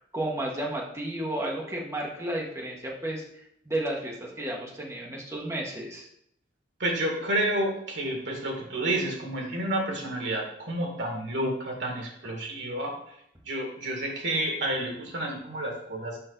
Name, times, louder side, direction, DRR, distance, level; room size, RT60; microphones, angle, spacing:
voice 1, 0.0-3.2 3.6-6.1, right 1 dB, 15° right, -2 dB, 1.4 m, -32 dB
voice 2, 6.8-12.9 13.4-16.2, right 1 dB, 80° right, 1 dB, 2.0 m, -30 dB
6.8 x 5.3 x 3.9 m, 0.71 s
head